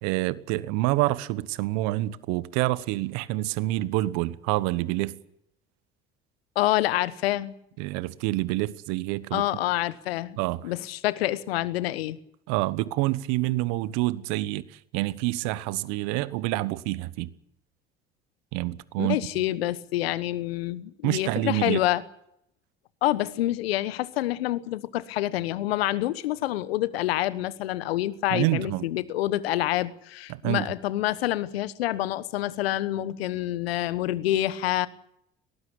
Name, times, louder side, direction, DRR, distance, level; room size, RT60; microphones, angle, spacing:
voice 1, 0.0-5.2 7.8-9.4 10.4-10.7 12.5-17.3 18.5-19.3 21.0-21.9 28.3-28.8 30.3-30.7, right 18 dB, 70° right, 1.2 m, -27 dB
voice 2, 6.5-7.5 9.3-10.4 10.6-12.2 19.0-22.0 23.0-34.9, left 15 dB, 80° left, 1.2 m, -27 dB
22.0 x 18.5 x 8.8 m
hypercardioid pair, 60°, 30 cm